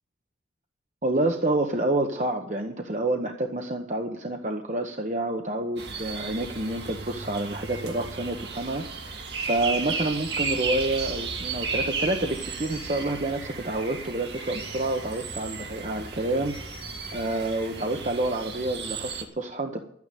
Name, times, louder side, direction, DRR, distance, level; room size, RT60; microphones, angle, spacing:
voice 1, 1.0-16.5 17.1-19.8, right 2 dB, 40° right, 4 dB, 1.0 m, -28 dB
sound 1, 5.8-19.2, right 4 dB, 70° right, 2.1 m, -34 dB
12.0 x 9.6 x 9.1 m, 0.71 s
head